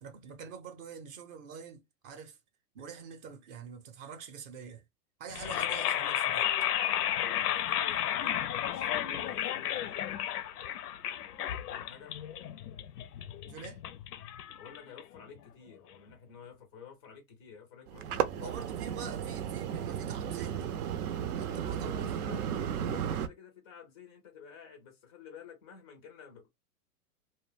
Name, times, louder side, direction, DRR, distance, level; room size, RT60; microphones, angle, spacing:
voice 1, 0.0-2.4 2.7-4.8 5.2-6.5 13.4-13.8 18.4-20.7 21.3-22.1, right 6 dB, 35° right, 0.6 m, -46 dB
sound 1, 5.3-15.4, left 11 dB, 85° left, 0.6 m, -33 dB
voice 2, 7.2-10.0 11.6-12.1 14.6-18.5 21.7-26.5, left 6 dB, 20° left, 0.3 m, -51 dB
sound 2, 17.9-23.3, right 9 dB, 75° right, 0.6 m, -34 dB
2.2 x 2.2 x 3.2 m
hypercardioid pair, 120°, 45 cm